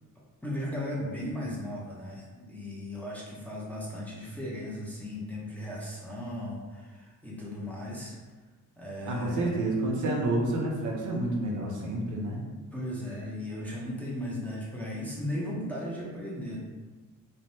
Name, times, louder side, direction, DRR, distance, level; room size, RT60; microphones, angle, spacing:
voice 1, 0.4-8.2 8.8-9.6 12.7-16.6, left 1 dB, 5° left, -6 dB, 0.5 m, -36 dB
voice 2, 9.0-12.4, right 2 dB, 70° right, -1 dB, 0.6 m, -29 dB
3.2 x 2.1 x 2.6 m, 1.3 s
cardioid pair, 150°, 32 cm